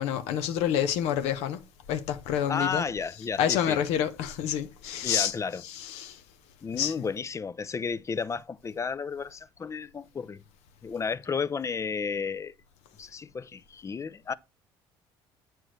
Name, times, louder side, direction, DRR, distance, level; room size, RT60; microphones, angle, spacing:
voice 1, 0.0-1.6 1.9-2.8 3.4-5.3 5.6-6.2 6.7-6.9, left 9 dB, 80° left, 0.8 m, -28 dB
voice 2, 2.5-3.8 5.0-5.6 6.6-10.4 10.8-12.5 13.0-14.3, left 5 dB, 25° left, 0.5 m, -32 dB
7.8 x 4.5 x 3.1 m
supercardioid pair, 80°, 11 cm